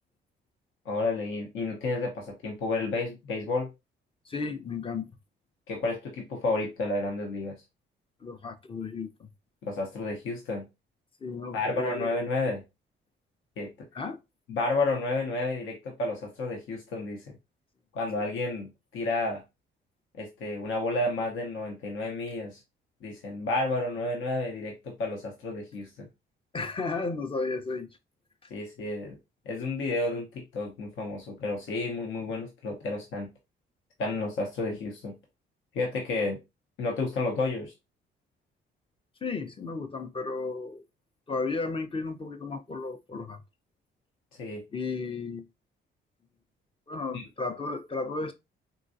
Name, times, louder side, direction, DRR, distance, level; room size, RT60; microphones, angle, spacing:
voice 1, 0.8-3.7 5.7-7.6 9.6-10.6 11.5-12.6 13.6-13.9 14.5-17.4 17.9-19.4 20.2-22.6 23.0-26.1 28.5-29.2 29.5-33.3 34.0-35.2 35.7-36.4 36.8-37.7 44.4-44.6 47.1-47.2, left 2 dB, 80° left, 0.9 m, -31 dB
voice 2, 4.3-5.1 8.2-9.3 11.2-12.1 13.9-14.2 26.5-27.9 39.2-40.8 41.3-43.4 44.7-45.5 46.9-48.3, left 4 dB, 25° left, 0.6 m, -33 dB
3.8 x 2.3 x 2.6 m
cardioid pair, 90°, 20 cm